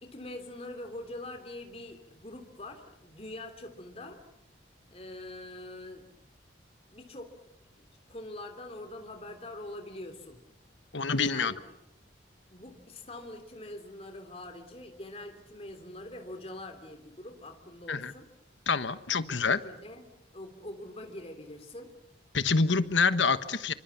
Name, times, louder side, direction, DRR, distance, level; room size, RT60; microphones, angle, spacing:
voice 1, 0.0-4.2 4.9-6.0 6.9-7.3 8.1-10.4 11.2-11.7 12.5-18.3 19.3-21.9, left 1 dB, 30° left, 6 dB, 3.2 m, -44 dB
voice 2, 10.9-11.5 17.9-18.1 18.7-19.6 22.3-23.7, left 4 dB, 75° left, 13 dB, 1.3 m, -26 dB
27.5 x 25.0 x 7.2 m, 0.80 s
head